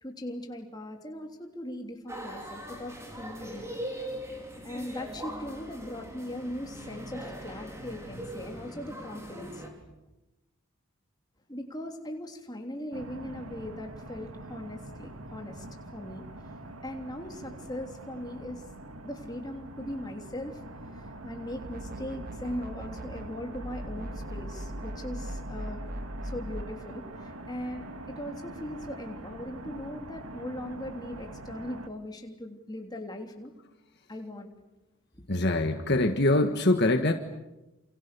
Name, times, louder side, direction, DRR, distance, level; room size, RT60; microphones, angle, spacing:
voice 1, 0.0-3.7 4.6-9.7 11.5-15.7 15.9-16.2 16.8-18.6 19.0-20.6 20.9-25.8 26.2-33.5 34.1-34.5 35.1-35.2, left 1 dB, 20° left, 3 dB, 3.2 m, -39 dB
sound 1, 2.1-9.7, equal, 15° right, 4.6 m, -41 dB
sound 2, 12.9-31.9, right 1 dB, 75° right, 2.1 m, -44 dB
sound 3, 21.6-23.3 23.5-26.7, right 1 dB, 40° right, 1.3 m, -39 dB
voice 2, 35.3-37.1, left 2 dB, 50° left, 6 dB, 1.5 m, -24 dB
29.5 x 28.5 x 6.9 m, 0.99 s
head